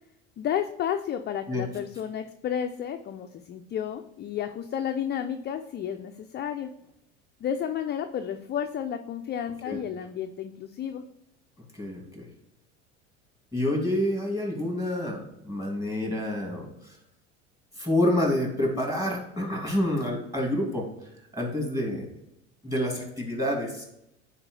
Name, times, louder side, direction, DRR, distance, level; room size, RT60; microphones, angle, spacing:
voice 1, 0.4-6.7 7.4-11.0, left 9 dB, 30° left, 6 dB, 0.5 m, -32 dB
voice 2, 11.7-12.3 13.5-17.0 17.8-20.8 21.3-22.1 22.6-23.8, left 1 dB, 10° right, -1 dB, 2.7 m, -28 dB
9.6 x 4.6 x 3.3 m, 0.81 s
hypercardioid pair, 80°, 37 cm